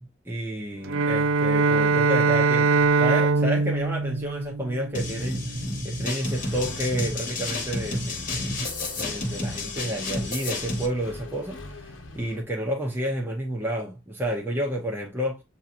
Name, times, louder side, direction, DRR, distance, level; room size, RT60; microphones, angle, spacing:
voice 1, 0.0-8.6 9.0-15.4, right 1 dB, 10° right, 0.7 m, -30 dB
Bowed string instrument, 0.8-5.2, right 4 dB, 85° right, 0.4 m, -22 dB
sound 1, 4.9-10.9, left 2 dB, 40° left, 1.2 m, -31 dB
Accelerating revving vroom, 6.2-12.4, left 2 dB, 70° left, 0.9 m, -42 dB
7.2 x 2.8 x 2.4 m
head